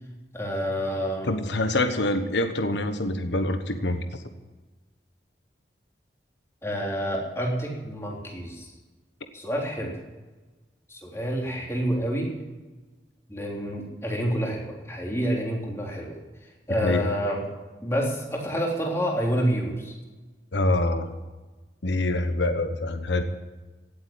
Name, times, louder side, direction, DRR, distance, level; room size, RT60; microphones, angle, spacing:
voice 1, 0.3-1.4 6.6-8.7 9.3-9.9 10.9-12.3 13.3-17.4 17.8-19.9, equal, 15° left, -1 dB, 3.5 m, -28 dB
voice 2, 1.2-4.2 16.8-17.0 20.5-21.2 21.8-23.2, left 2 dB, 80° left, 8 dB, 1.1 m, -25 dB
17.0 x 8.2 x 9.2 m, 1.2 s
head